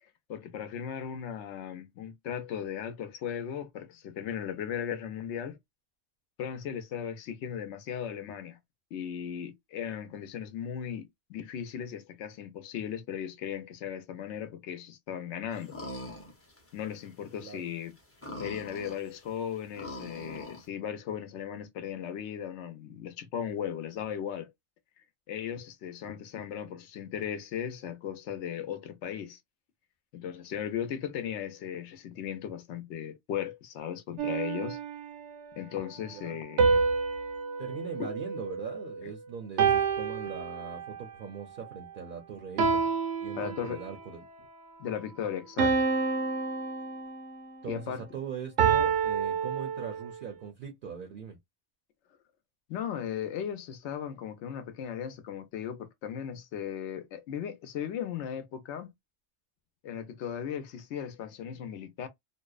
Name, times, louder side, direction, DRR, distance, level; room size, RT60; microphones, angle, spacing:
voice 1, 0.0-5.6 6.4-8.6 8.9-15.8 16.7-18.0 18.4-24.5 25.3-29.4 30.1-34.8 35.6-36.8 38.0-38.1 43.3-43.8 44.8-45.8 47.7-48.0 52.7-58.9 59.8-62.1, left 9 dB, 85° left, 0.9 m, -37 dB
sound 1, 15.5-17.1 17.3-17.4 17.9-20.7, left 1 dB, 15° left, 0.5 m, -42 dB
sound 2, 34.2-35.4 36.6-39.0 39.6-41.1 42.6-44.1 45.6-47.5 48.6-50.2, right 5 dB, 85° right, 0.9 m, -28 dB
voice 2, 37.6-42.9 43.2-44.5 47.6-51.4, right 6 dB, 60° right, 0.6 m, -41 dB
2.6 x 2.0 x 2.3 m
omnidirectional pair, 1.1 m